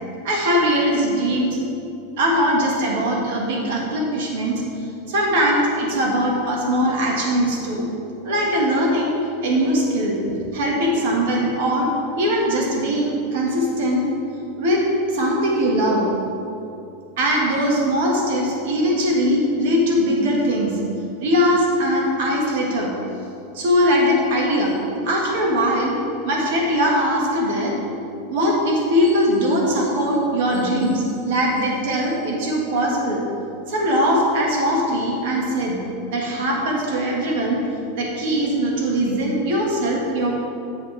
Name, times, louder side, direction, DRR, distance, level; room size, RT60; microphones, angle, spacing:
voice 1, 0.2-1.6 2.2-4.6 5.1-7.8 8.2-9.2 9.4-10.2 10.5-11.9 12.2-14.1 14.6-16.1 17.2-20.8 21.2-22.9 23.5-24.8 25.0-26.0 26.2-27.7 28.3-33.2 33.7-35.8 36.1-37.6 37.9-40.3, equal, 65° right, -2 dB, 2.0 m, -21 dB
10.0 x 7.1 x 3.5 m, 2.7 s
supercardioid pair, 145°, 0 cm